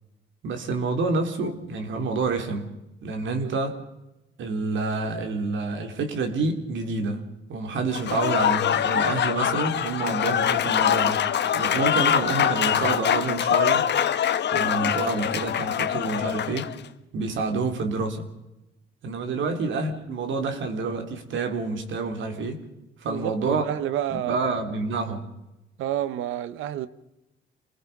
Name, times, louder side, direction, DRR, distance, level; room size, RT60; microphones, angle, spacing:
voice 1, 0.4-2.7 3.0-3.8 4.4-11.3 11.5-13.9 14.5-16.7 17.1-18.3 19.0-22.6 23.0-23.6 24.1-25.3, right 3 dB, 70° right, 3.6 m, -28 dB
Applause / Crowd, 7.9-16.8, left 9 dB, 60° left, 1.3 m, -24 dB
voice 2, 23.1-24.4 25.8-26.9, right 12 dB, 90° right, 1.2 m, -29 dB
28.5 x 20.5 x 5.5 m
cardioid pair, 90°, 20 cm